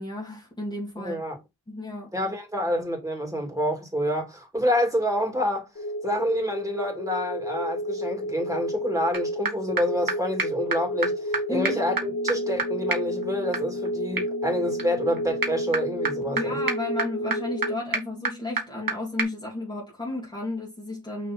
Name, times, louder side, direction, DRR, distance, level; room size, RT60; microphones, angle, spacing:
voice 1, 0.0-1.2 1.7-2.1 11.5-11.8 16.3-21.3, left 2 dB, 10° left, 2.2 m, -33 dB
voice 2, 1.0-1.4 2.1-5.7 6.0-16.6, equal, 10° right, 2.9 m, -28 dB
sound 1, 5.7-17.7, equal, 35° left, 2.0 m, -31 dB
sound 2, 9.1-9.2 9.5-9.6 9.8-9.9 10.1-10.2 10.4-10.5 10.7-10.8 11.0-11.1 11.3-11.4 11.6-18.9 19.2-19.3, right 3 dB, 55° right, 1.6 m, -31 dB
5.9 x 4.2 x 4.6 m
wide cardioid pair, 90°, 40 cm